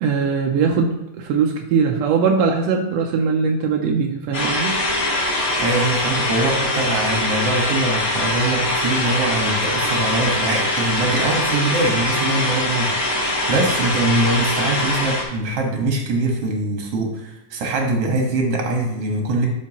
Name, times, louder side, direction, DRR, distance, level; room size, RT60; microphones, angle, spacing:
voice 1, 0.0-4.7, right 5 dB, 75° right, 1 dB, 1.5 m, -20 dB
sound 1, 4.3-15.2, left 1 dB, 35° left, 1.6 m, -22 dB
voice 2, 5.6-19.5, right 2 dB, 55° right, 1 dB, 2.2 m, -23 dB
12.0 x 5.5 x 3.0 m, 0.96 s
omnidirectional pair, 3.7 m